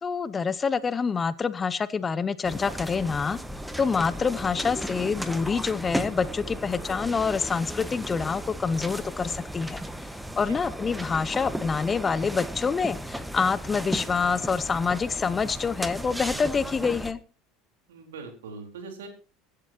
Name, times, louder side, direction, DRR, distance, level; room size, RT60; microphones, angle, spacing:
voice 1, 0.0-3.4 3.8-10.1 10.4-17.2, left 5 dB, 25° left, 17 dB, 0.9 m, -27 dB
sound 1, 2.4-17.1, right 1 dB, 5° right, 1.4 m, -35 dB
voice 2, 17.9-19.1, right 4 dB, 70° right, 3 dB, 4.1 m, -41 dB
24.5 x 11.5 x 2.9 m, 0.36 s
figure-of-eight pair, 70°, 0 cm